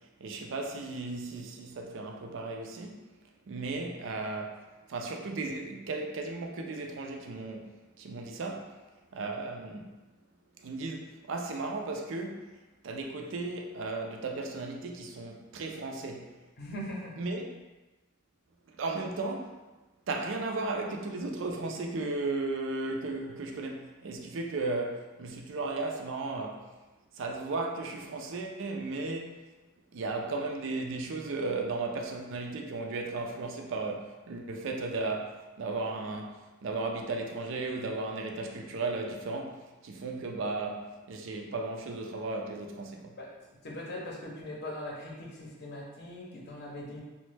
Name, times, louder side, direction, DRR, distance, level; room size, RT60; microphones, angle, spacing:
voice 1, 0.2-3.0 3.5-4.6 4.9-8.8 9.1-9.9 10.6-12.5 12.8-16.3 17.2-17.4 18.7-19.6 20.1-26.7 27.1-29.4 29.9-43.2, right 3 dB, 65° right, 2 dB, 0.4 m, -35 dB
voice 2, 16.6-17.1 43.2-43.3 43.6-47.0, left 1 dB, 50° left, -2 dB, 0.6 m, -40 dB
3.0 x 2.1 x 3.2 m, 1.1 s
head